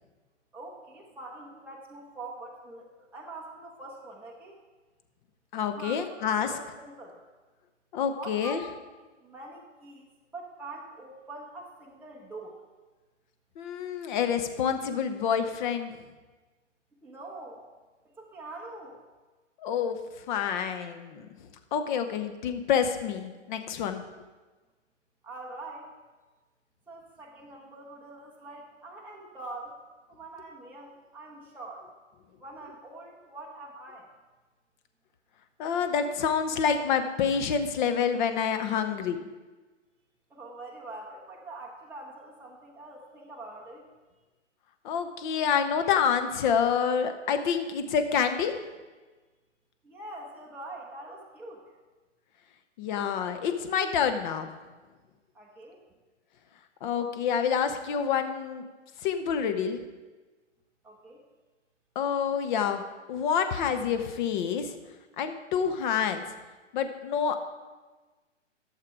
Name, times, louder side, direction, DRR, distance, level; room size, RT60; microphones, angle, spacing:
voice 1, 0.5-4.6 5.7-7.2 8.1-8.7 9.2-10.1 10.3-12.5 17.0-17.6 18.0-19.0 25.2-25.9 26.9-29.8 30.1-31.9 32.4-34.1 40.3-43.8 49.8-51.6 55.3-55.8 60.8-61.2, right 2 dB, 5° right, -3 dB, 1.0 m, -44 dB
voice 2, 5.5-6.5 7.9-8.6 13.6-15.9 19.6-20.0 20.3-21.3 21.7-24.0 35.6-39.2 44.8-48.6 52.8-54.5 56.8-58.6 59.0-59.8 61.9-62.8 63.1-64.7 65.2-66.2 66.7-67.4, left 7 dB, 40° left, 8 dB, 1.0 m, -27 dB
12.0 x 6.8 x 4.7 m, 1.3 s
hypercardioid pair, 135°, 37 cm